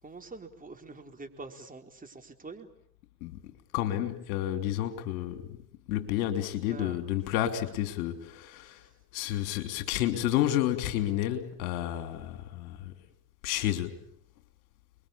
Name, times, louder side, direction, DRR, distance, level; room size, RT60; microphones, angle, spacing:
voice 1, 0.0-2.7 6.6-7.0, right 3 dB, 20° right, 4.4 m, -45 dB
voice 2, 3.7-5.6 5.9-8.8 9.1-12.9 13.4-14.0, left 12 dB, 75° left, 3.1 m, -30 dB
30.0 x 22.0 x 8.7 m
hypercardioid pair, 70°, 43 cm